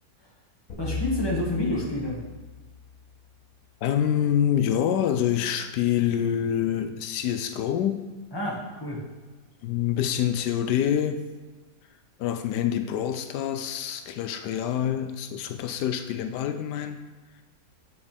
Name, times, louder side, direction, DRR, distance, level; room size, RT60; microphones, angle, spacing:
sound 1, 0.7-3.2, left 5 dB, 60° left, 1.6 m, -36 dB
voice 1, 0.8-2.2 8.3-9.0, left 1 dB, 15° left, -4 dB, 1.8 m, -28 dB
voice 2, 3.8-8.1 9.6-11.2 12.2-17.0, left 10 dB, 85° left, 8 dB, 1.2 m, -26 dB
9.5 x 6.5 x 3.4 m, 1.3 s
omnidirectional pair, 1.7 m